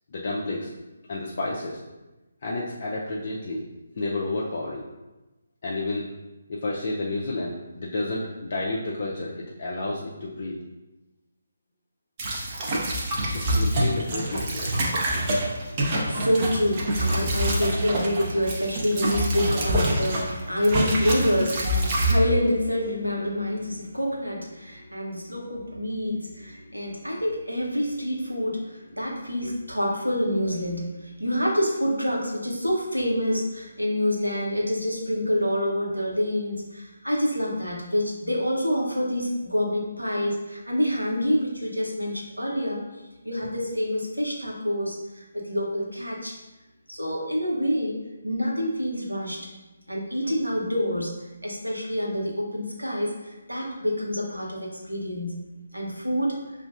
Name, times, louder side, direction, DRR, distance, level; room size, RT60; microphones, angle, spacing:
voice 1, 0.1-0.7 1.1-1.8 2.4-3.6 4.0-4.9 5.6-6.1 6.5-10.6 13.3-14.7, left 2 dB, 45° left, -4 dB, 0.5 m, -30 dB
sound 1, 12.2-20.3 20.6-22.1, right 1 dB, 30° right, 0.6 m, -26 dB
voice 2, 15.7-46.3 46.9-48.0 48.2-49.4 49.9-51.1 51.4-55.3 55.7-56.3, equal, 90° right, -3 dB, 0.9 m, -27 dB
5.7 x 2.5 x 2.5 m, 1.1 s
figure-of-eight pair, 145°, 0 cm